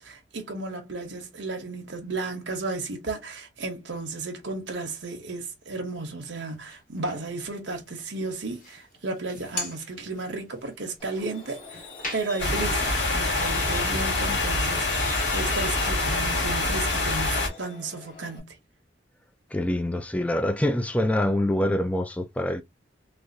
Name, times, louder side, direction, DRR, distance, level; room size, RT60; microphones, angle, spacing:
voice 1, 0.0-11.8 12.1-18.5, right 3 dB, 85° right, 0.9 m, -34 dB
sound 1, 6.5-7.3 7.8-13.4, left 2 dB, 45° left, 1.7 m, -41 dB
Truck, 11.0-18.4, left 5 dB, 30° left, 1.7 m, -42 dB
sound 2, 12.4-17.5, left 2 dB, 80° left, 1.6 m, -25 dB
voice 2, 19.5-22.6, left 1 dB, 10° left, 0.4 m, -25 dB
3.3 x 2.4 x 2.6 m
head